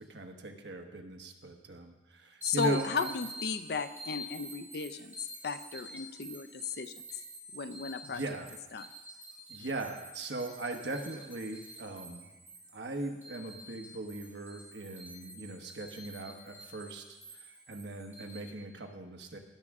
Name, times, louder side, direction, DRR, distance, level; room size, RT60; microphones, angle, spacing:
voice 1, 0.0-3.1 8.0-8.5 9.5-12.3 12.7-19.4, right 2 dB, 75° right, 3 dB, 1.1 m, -39 dB
voice 2, 2.4-5.1 5.4-6.9 7.5-8.2 8.7-8.9, left 5 dB, 60° left, 11 dB, 0.5 m, -35 dB
sound 1, 2.4-18.4, equal, 10° right, 3.0 m, -48 dB
16.5 x 6.3 x 3.6 m, 1.1 s
head